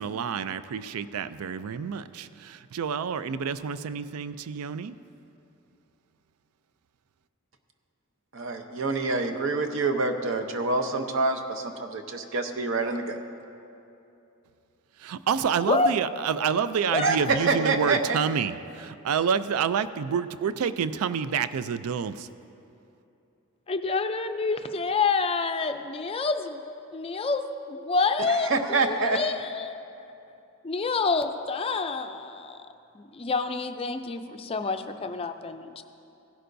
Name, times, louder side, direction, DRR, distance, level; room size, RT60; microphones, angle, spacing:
voice 1, 0.0-5.0 15.0-22.3, right 7 dB, 80° right, 14 dB, 0.4 m, -28 dB
voice 2, 8.3-13.2 17.0-18.2 28.3-29.2, right 3 dB, 60° right, 6 dB, 0.8 m, -26 dB
voice 3, 23.7-26.6 26.9-29.8 30.6-32.6 32.9-35.8, left 4 dB, 25° left, 7 dB, 0.4 m, -28 dB
16.5 x 11.0 x 2.6 m, 2.8 s
head